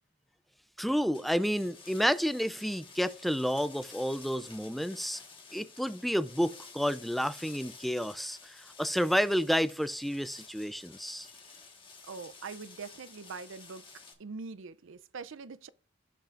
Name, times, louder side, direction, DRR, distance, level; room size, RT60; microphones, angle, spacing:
voice 1, 0.8-5.2 5.5-11.3, equal, ahead, 0.3 m, -30 dB
sound 1, 1.1-14.1, left 4 dB, 25° left, 1.5 m, -52 dB
voice 2, 12.0-15.7, right 4 dB, 70° right, 0.5 m, -43 dB
17.0 x 5.7 x 2.5 m
head